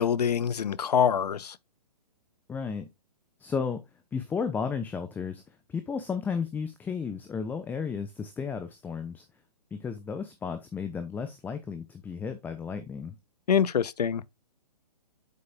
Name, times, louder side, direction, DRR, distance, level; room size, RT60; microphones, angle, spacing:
voice 1, 0.0-1.5 13.5-14.2, left 8 dB, 80° left, 0.7 m, -25 dB
voice 2, 2.5-2.9 3.4-3.8 4.1-9.2 9.7-13.1, left 6 dB, 10° left, 0.7 m, -33 dB
8.4 x 8.0 x 2.2 m
hypercardioid pair, 135°, 20 cm